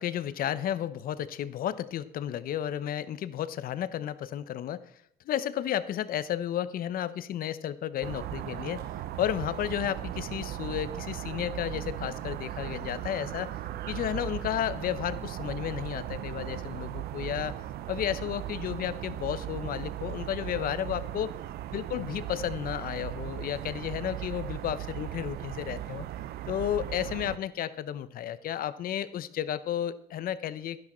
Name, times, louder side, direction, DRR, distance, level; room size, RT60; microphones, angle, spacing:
voice 1, 0.0-4.8 5.2-8.8 9.2-13.5 13.9-17.5 17.9-21.3 21.7-26.1 26.5-30.8, left 11 dB, 60° left, 15 dB, 0.8 m, -32 dB
sound 1, 8.0-27.4, right 13 dB, 70° right, 0.6 m, -37 dB
11.5 x 10.5 x 4.3 m, 0.70 s
cardioid pair, 110°, 17 cm